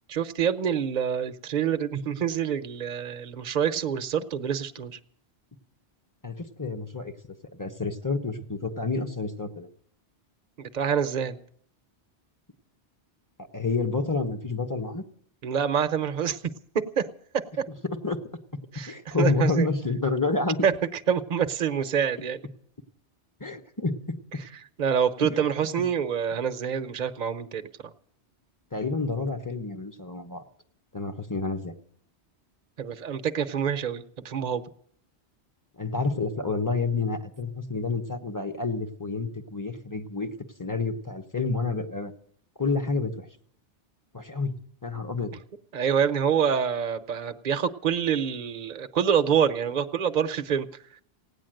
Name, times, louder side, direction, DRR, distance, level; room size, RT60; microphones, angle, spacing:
voice 1, 0.1-5.0 10.6-11.4 15.4-16.4 17.0-17.1 17.6-17.7 18.7-19.7 20.6-20.7 21.1-22.4 24.8-27.6 32.8-34.6 45.7-50.7, right 7 dB, 45° right, 9 dB, 0.8 m, -26 dB
voice 2, 6.2-7.1 7.5-9.7 13.5-15.0 17.8-18.2 18.9-20.6 23.4-24.2 25.2-25.4 28.7-30.4 30.9-31.7 35.8-40.3 40.6-42.1 42.6-43.2 44.1-44.5 44.8-45.3, left 3 dB, 15° left, 5 dB, 1.1 m, -29 dB
17.0 x 9.6 x 7.8 m, 0.63 s
omnidirectional pair, 1.2 m